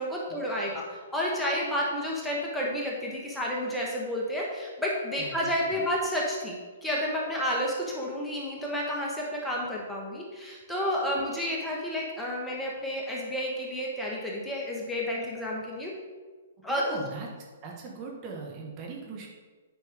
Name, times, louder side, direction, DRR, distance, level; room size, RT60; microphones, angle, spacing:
voice 1, 0.0-15.9 16.6-17.0, equal, 5° left, -4 dB, 1.5 m, -31 dB
voice 2, 5.2-5.8 16.6-17.3 17.6-19.3, right 4 dB, 35° right, -1 dB, 1.6 m, -40 dB
9.0 x 5.5 x 3.7 m, 1.4 s
hypercardioid pair, 125°, 0 cm